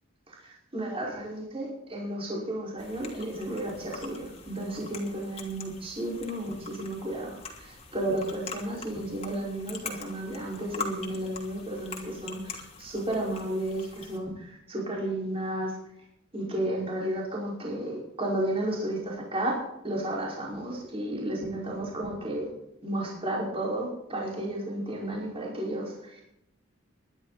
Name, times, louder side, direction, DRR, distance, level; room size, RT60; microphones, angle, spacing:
voice 1, 0.4-15.7 16.3-19.6 19.8-22.5 22.8-26.2, right 1 dB, 25° right, -3 dB, 5.2 m, -33 dB
sound 1, 2.8-14.2, left 4 dB, 30° left, 2.9 m, -43 dB
21.0 x 12.0 x 4.2 m, 0.80 s
head